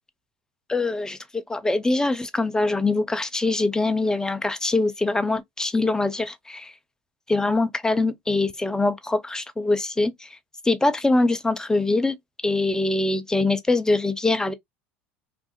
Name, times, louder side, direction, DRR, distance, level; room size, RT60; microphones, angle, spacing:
voice 1, 0.7-6.7 7.3-10.1 10.7-12.2 12.4-14.5, left 2 dB, 10° left, 0.5 m, -23 dB
2.6 x 2.4 x 2.3 m
hypercardioid pair, 75°, 6 cm